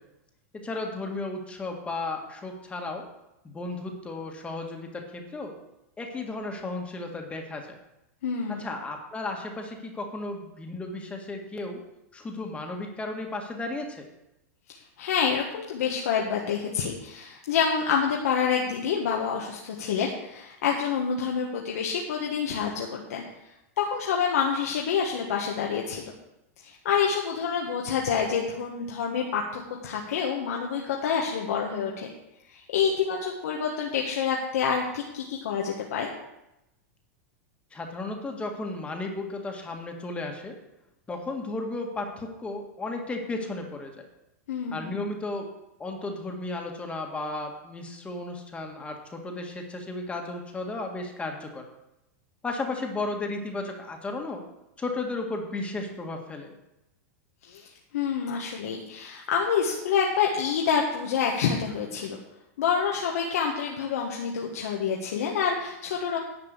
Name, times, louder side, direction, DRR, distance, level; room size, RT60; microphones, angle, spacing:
voice 1, 0.5-3.0 3.4-5.5 6.0-7.8 8.5-11.8 12.1-14.0 37.7-40.6 41.1-43.9 44.7-45.5 45.8-51.6 52.4-54.4 54.8-56.5, left 2 dB, 15° left, 2 dB, 1.8 m, -34 dB
voice 2, 8.2-8.6 15.0-23.2 23.8-26.1 26.6-32.1 32.5-36.1 44.5-45.0 57.4-57.7 57.9-62.2 62.6-66.2, left 6 dB, 80° left, -1 dB, 1.5 m, -27 dB
10.5 x 5.3 x 8.3 m, 0.90 s
hypercardioid pair, 125°, 8 cm